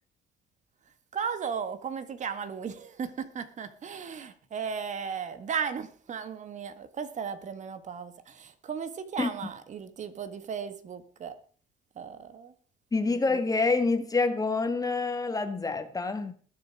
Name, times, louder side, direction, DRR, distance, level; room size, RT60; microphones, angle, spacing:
voice 1, 1.1-11.4 12.0-12.5 13.1-13.2, right 6 dB, 45° right, 1.7 m, -36 dB
voice 2, 12.9-16.3, left 3 dB, 20° left, 1.8 m, -27 dB
20.5 x 7.4 x 4.8 m
cardioid pair, 110°, 17 cm